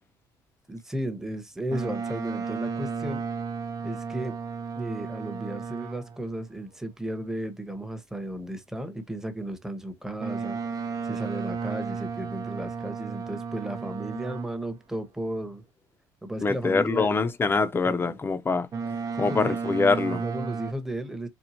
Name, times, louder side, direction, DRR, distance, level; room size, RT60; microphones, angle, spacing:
voice 1, 0.7-3.2 3.8-4.4 4.8-15.6 16.2-17.1 17.8-18.2 19.2-19.6 20.1-21.3, right 1 dB, 5° right, 1.1 m, -34 dB
Boat Water vehicle, 1.7-6.2 10.2-14.7 18.7-20.7, right 5 dB, 40° right, 0.8 m, -33 dB
voice 2, 16.4-18.7 19.2-20.2, left 4 dB, 25° left, 0.8 m, -24 dB
4.4 x 2.3 x 2.8 m
supercardioid pair, 90°, 9 cm